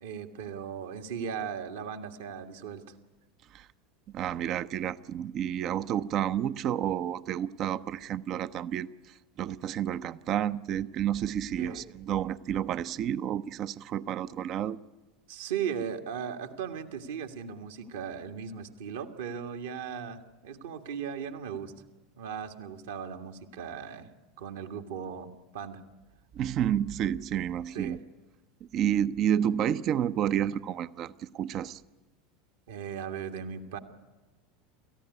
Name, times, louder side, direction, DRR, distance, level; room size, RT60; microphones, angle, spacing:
voice 1, 0.0-2.8 11.6-11.8 15.3-21.7 22.2-24.1 24.4-25.8 27.7-28.0 32.7-33.8, right 7 dB, 65° right, 6 dB, 1.8 m, -37 dB
voice 2, 4.1-14.8 26.3-28.0 28.6-31.8, right 10 dB, 40° right, 15 dB, 0.7 m, -30 dB
28.5 x 14.5 x 9.6 m, 1.2 s
figure-of-eight pair, 80°, 0 cm